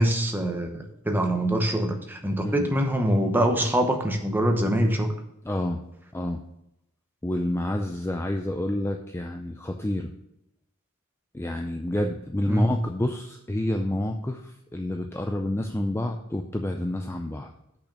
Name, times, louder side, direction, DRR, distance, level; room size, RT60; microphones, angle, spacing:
voice 1, 0.0-5.1 12.5-12.7, right 1 dB, 10° right, 3 dB, 0.9 m, -24 dB
voice 2, 5.4-5.8 6.1-6.4 7.2-10.1 11.3-17.5, left 1 dB, 10° left, 4 dB, 0.4 m, -29 dB
6.4 x 5.8 x 6.8 m, 0.82 s
head